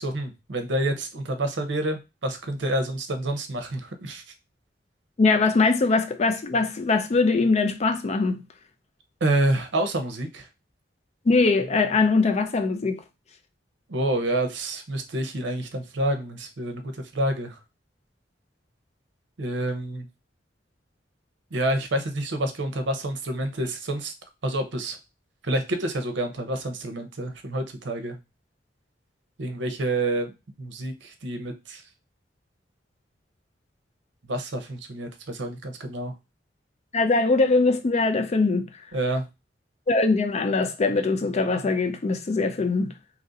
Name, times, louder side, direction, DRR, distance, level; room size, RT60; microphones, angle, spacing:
voice 1, 0.0-4.2 9.2-10.5 13.9-16.8 17.1-17.6 19.4-20.1 21.5-24.1 24.4-25.0 25.4-28.2 29.4-31.8 34.3-36.1 38.9-39.3, right 1 dB, 80° right, 0.7 m, -28 dB
voice 2, 5.2-8.4 11.3-13.0 36.9-38.7 39.9-42.9, left 3 dB, 40° left, 0.4 m, -22 dB
3.0 x 2.6 x 3.8 m
head